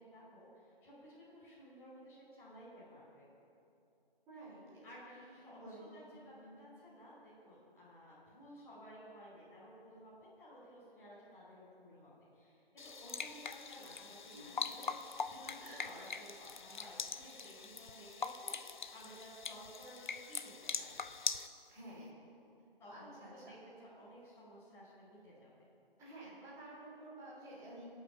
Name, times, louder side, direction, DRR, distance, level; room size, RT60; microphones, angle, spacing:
voice 1, 0.0-3.3 4.8-21.0 22.8-25.5, equal, 10° left, -10 dB, 5.1 m, -55 dB
voice 2, 4.3-5.0 5.4-6.7 14.3-14.6 15.4-16.0 21.7-22.1 22.9-23.6 26.0-27.8, right 1 dB, 10° right, -10 dB, 5.0 m, -52 dB
sound 1, 12.8-21.5, left 5 dB, 55° left, 0.8 m, -43 dB
26.0 x 9.0 x 6.0 m, 2.8 s
figure-of-eight pair, 155°, 30 cm